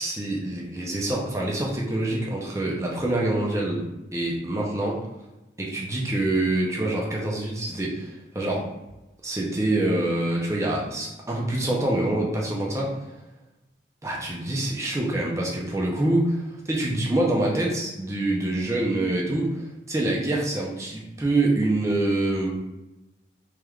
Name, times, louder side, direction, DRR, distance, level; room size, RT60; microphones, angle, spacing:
voice 1, 0.0-3.8 4.1-5.0 5.6-8.6 9.2-13.0 14.0-22.5, right 1 dB, 15° right, -2 dB, 0.5 m, -26 dB
3.4 x 3.1 x 2.3 m, 0.99 s
head